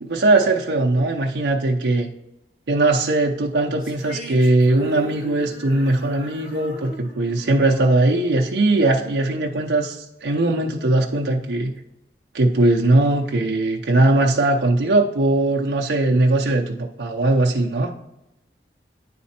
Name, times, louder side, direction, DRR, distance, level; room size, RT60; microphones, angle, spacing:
voice 1, 0.0-2.1 2.7-11.7 12.3-17.9, right 2 dB, 85° right, 0 dB, 0.6 m, -19 dB
sound 1, 3.8-9.2, right 1 dB, 55° left, 2.7 m, -37 dB
9.4 x 4.1 x 4.3 m, 0.92 s
head